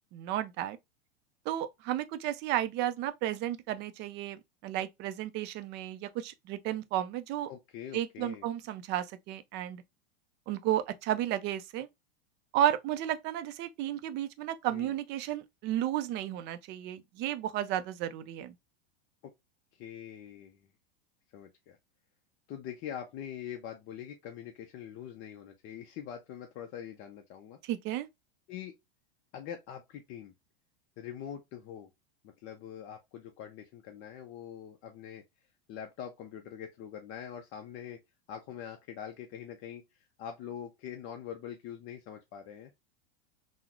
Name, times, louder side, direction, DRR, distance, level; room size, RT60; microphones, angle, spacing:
voice 1, 0.1-0.8 1.5-7.5 7.9-9.8 10.5-11.9 12.5-18.5 27.6-28.1, right 12 dB, 35° right, 0.4 m, -33 dB
voice 2, 7.5-8.5 14.7-14.9 19.2-19.3 19.7-20.7 21.3-21.8 22.5-27.6 28.5-28.8 29.3-30.3 31.0-31.9 32.2-35.2 35.7-38.0 38.3-42.7, left 9 dB, 40° left, 0.5 m, -44 dB
3.6 x 2.0 x 2.9 m
supercardioid pair, 120°, 32 cm